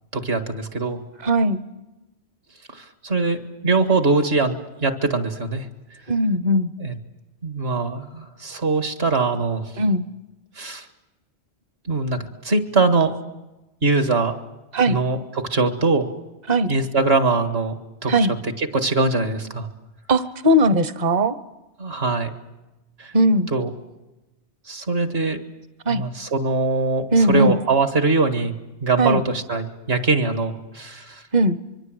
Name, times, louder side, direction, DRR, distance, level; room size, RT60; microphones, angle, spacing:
voice 1, 0.1-1.0 2.7-5.7 6.8-7.0 7.4-9.8 10.6-10.9 11.9-13.2 13.8-14.4 14.9-16.1 16.7-17.7 18.0-18.1 18.4-19.7 21.8-22.3 23.0-23.1 23.5-23.7 24.7-25.4 25.9-31.2, right 3 dB, 65° right, 8 dB, 2.1 m, -22 dB
voice 2, 1.2-1.6 6.1-6.7 9.8-10.1 14.7-15.0 16.5-16.7 18.1-18.3 20.1-21.3 23.1-23.5 25.9-26.0 27.1-27.6 29.0-29.2 31.3-31.6, right 1 dB, 40° right, 14 dB, 1.0 m, -18 dB
24.5 x 23.5 x 7.8 m, 1.0 s
omnidirectional pair, 1.1 m